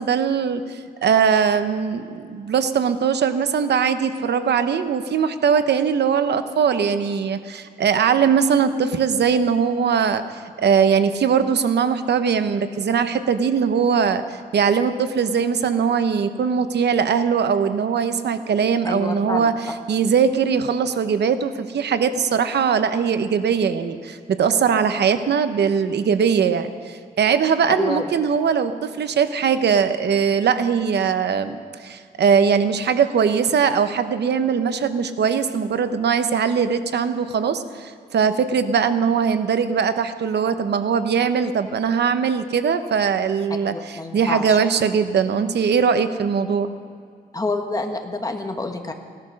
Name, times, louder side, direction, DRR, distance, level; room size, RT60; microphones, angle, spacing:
voice 1, 0.0-46.7, right 6 dB, 80° right, 10 dB, 0.9 m, -21 dB
voice 2, 18.8-19.5 27.8-28.0 43.7-44.6 47.3-48.9, left 2 dB, 20° left, 4 dB, 1.3 m, -27 dB
17.0 x 13.0 x 6.4 m, 2.2 s
wide cardioid pair, 150°, 17 cm